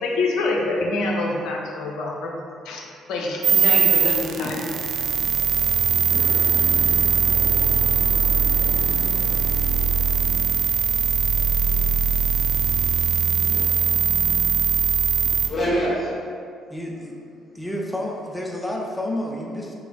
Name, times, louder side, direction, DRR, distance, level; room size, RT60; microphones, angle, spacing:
voice 1, 0.0-2.3 2.6-2.8 3.1-4.7, left 2 dB, 65° left, -1 dB, 0.5 m, -26 dB
sound 1, 3.4-15.5, right 6 dB, 60° right, 0.3 m, -20 dB
voice 2, 6.0-10.4 13.4-14.5 15.2-16.1, equal, 35° left, -7 dB, 1.2 m, -32 dB
voice 3, 16.7-17.1 17.5-19.7, left 1 dB, 10° left, -1 dB, 0.6 m, -30 dB
3.4 x 3.1 x 3.8 m, 2.3 s
hypercardioid pair, 45°, 0 cm